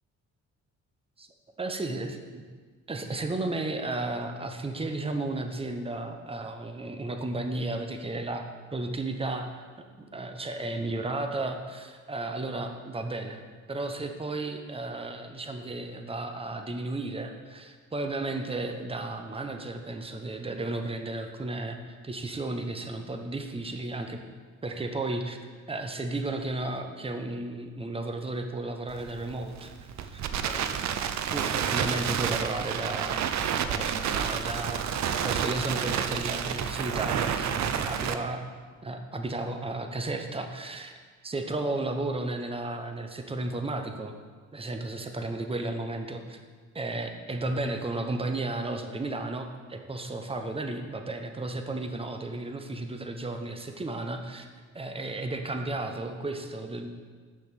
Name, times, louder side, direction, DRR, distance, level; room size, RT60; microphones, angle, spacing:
voice 1, 1.6-2.4 2.9-8.4 8.7-9.5 10.1-24.2 24.6-25.4 25.7-30.8 31.3-33.3 33.7-38.4 38.8-40.9 41.2-44.1 44.5-46.4 46.7-54.5 54.7-56.9, right 2 dB, 20° right, 5 dB, 0.9 m, -33 dB
Crackle, 28.9-38.1, right 8 dB, 65° right, 0.7 m, -30 dB
6.8 x 5.8 x 6.8 m, 1.5 s
cardioid pair, 90°, 30 cm